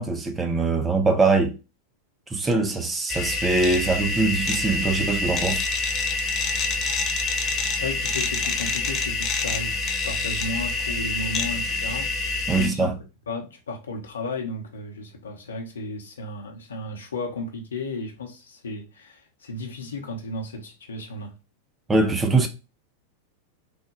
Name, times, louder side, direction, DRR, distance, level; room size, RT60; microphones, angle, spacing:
voice 1, 0.0-1.5 2.3-5.7 12.5-13.0 21.9-22.5, right 3 dB, 15° right, 0.5 m, -22 dB
sound 1, 3.1-12.7, left 3 dB, 30° left, 0.5 m, -26 dB
voice 2, 7.7-12.1 12.6-12.9 13.3-21.3, left 2 dB, 70° left, 0.8 m, -34 dB
3.4 x 2.2 x 3.0 m
figure-of-eight pair, 90°, 0 cm